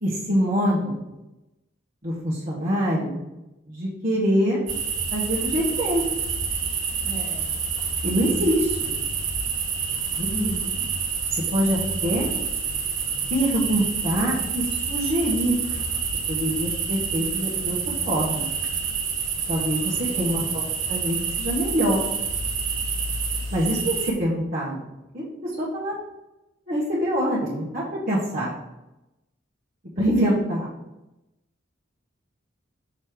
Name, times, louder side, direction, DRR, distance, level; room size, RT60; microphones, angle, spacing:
voice 1, 0.0-1.0 2.0-3.2 3.7-4.6 5.1-6.0 8.0-8.9 10.1-10.5 11.3-12.3 13.3-14.6 14.9-15.6 16.3-17.8 18.0-18.5 19.5-20.6 20.9-22.0 23.5-25.9 26.7-28.5 30.0-30.7, equal, 45° right, -9 dB, 1.6 m, -25 dB
sound 1, 4.7-24.1, right 5 dB, 85° right, 1.4 m, -28 dB
voice 2, 7.0-7.6 10.3-10.9 20.1-20.5, right 1 dB, 30° left, -1 dB, 1.5 m, -35 dB
6.5 x 4.2 x 5.0 m, 0.97 s
head